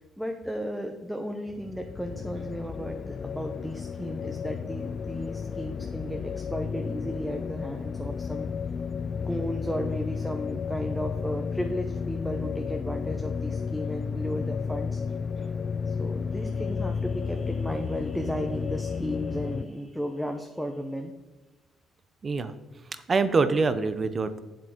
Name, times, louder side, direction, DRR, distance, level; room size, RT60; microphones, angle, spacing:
voice 1, 0.0-8.5 9.2-15.0 15.9-21.1, equal, ahead, 3 dB, 0.9 m, -34 dB
sound 1, 1.5-19.7, left 6 dB, 40° left, 0.3 m, -32 dB
voice 2, 22.2-22.5 22.9-24.4, right 4 dB, 35° right, 12 dB, 0.8 m, -25 dB
7.6 x 7.5 x 5.1 m, 1.1 s
cardioid pair, 100°, 0 cm